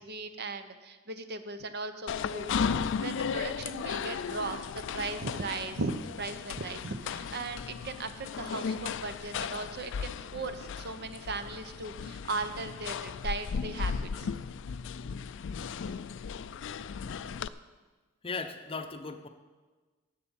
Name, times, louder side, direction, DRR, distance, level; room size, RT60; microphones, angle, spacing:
voice 1, 0.0-14.3 15.0-15.1, right 3 dB, 50° right, 9 dB, 0.8 m, -38 dB
sound 1, 2.1-17.5, left 6 dB, 60° left, 0.4 m, -36 dB
voice 2, 18.2-19.3, left 4 dB, 25° left, 7 dB, 0.7 m, -37 dB
11.0 x 7.8 x 7.1 m, 1.3 s
head